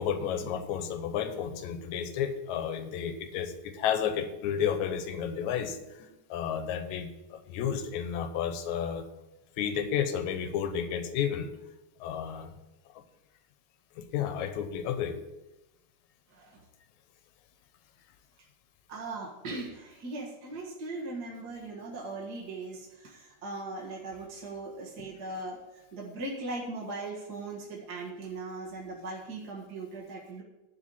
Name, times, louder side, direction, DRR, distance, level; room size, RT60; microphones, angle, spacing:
voice 1, 0.0-9.1 9.6-11.5 12.0-12.5 14.0-15.2 25.0-25.1, left 8 dB, 75° left, 8 dB, 2.2 m, -32 dB
voice 2, 16.3-16.6 18.9-30.4, right 2 dB, 40° right, -3 dB, 1.6 m, -39 dB
11.5 x 4.8 x 7.1 m, 0.99 s
omnidirectional pair, 3.5 m